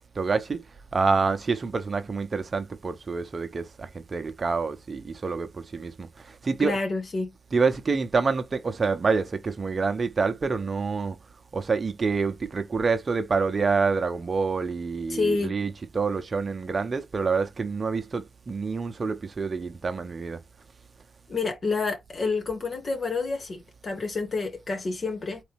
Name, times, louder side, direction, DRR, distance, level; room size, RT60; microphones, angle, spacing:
voice 1, 0.1-0.6 0.9-6.8 7.5-11.2 11.5-20.4, right 4 dB, 45° right, 0.9 m, -27 dB
voice 2, 6.6-7.3 15.1-15.5 21.3-25.4, left 3 dB, 50° left, 2.1 m, -28 dB
4.1 x 3.5 x 3.5 m
supercardioid pair, 45°, 0 cm